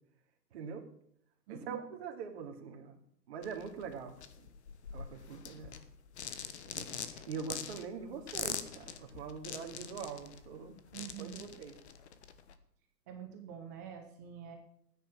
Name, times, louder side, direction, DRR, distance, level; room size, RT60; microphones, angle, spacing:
voice 1, 0.5-0.8 1.5-3.0 3.3-4.5 4.9-5.8 6.7-10.7 11.2-11.7, right 6 dB, 40° right, 3 dB, 2.7 m, -43 dB
voice 2, 1.5-1.8 10.9-11.5 13.1-14.6, right 8 dB, 10° right, 4 dB, 0.7 m, -46 dB
sound 1, 3.4-12.5, left 8 dB, 40° left, 1.3 m, -44 dB
15.5 x 9.8 x 6.2 m, 0.69 s
figure-of-eight pair, 135°, 50 cm